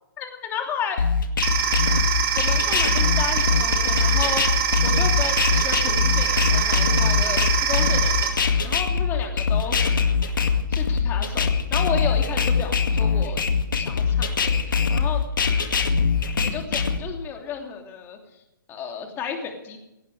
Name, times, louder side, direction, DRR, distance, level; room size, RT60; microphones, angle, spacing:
voice 1, 0.2-1.0 2.3-9.7 10.7-13.4 13.7-15.2 16.4-18.2 18.7-19.8, left 6 dB, 20° left, 3 dB, 2.9 m, -33 dB
sound 1, 1.0-17.0, left 6 dB, 75° left, 2.1 m, -22 dB
sound 2, 1.4-8.3, right 7 dB, 30° right, 3.3 m, -24 dB
17.5 x 15.5 x 4.9 m, 0.92 s
hypercardioid pair, 140°, 11 cm